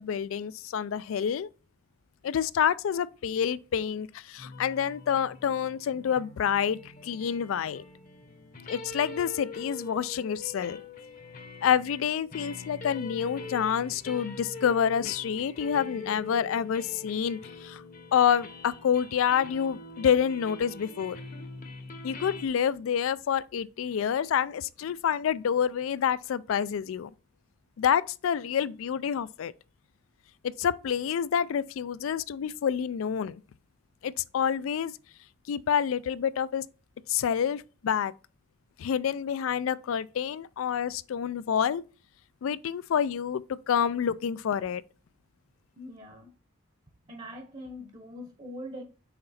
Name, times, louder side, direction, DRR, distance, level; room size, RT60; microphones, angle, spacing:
voice 1, 0.0-1.5 2.2-7.8 8.7-10.8 11.6-17.8 18.1-21.2 22.0-27.1 27.8-29.5 30.4-33.4 34.0-34.9 35.5-36.6 37.1-38.1 38.8-41.8 42.4-44.8, left 8 dB, 70° left, 0.3 m, -28 dB
sound 1, 4.4-22.5, left 3 dB, 40° left, 0.9 m, -43 dB
voice 2, 45.8-46.3 47.1-48.8, equal, 35° right, 0.9 m, -42 dB
5.9 x 3.8 x 4.1 m
head